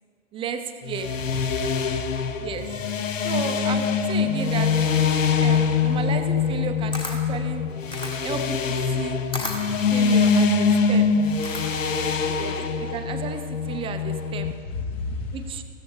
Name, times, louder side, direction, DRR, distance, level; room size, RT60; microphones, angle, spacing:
voice 1, 0.3-1.1 2.4-2.8 3.2-4.8 5.4-7.7 8.2-9.3 9.9-11.1 12.4-14.5 15.3-15.6, right 7 dB, 15° right, 8 dB, 0.6 m, -33 dB
sound 1, 0.8-14.5, left 5 dB, 80° left, 1.0 m, -24 dB
voice 2, 1.2-2.7 3.4-3.6 12.2-12.7 14.5-15.6, left 3 dB, 50° left, 3 dB, 2.0 m, -35 dB
Camera, 6.5-12.0, left 2 dB, 10° left, 1.3 m, -36 dB
15.5 x 13.5 x 3.8 m, 2.1 s
figure-of-eight pair, 110°, 38 cm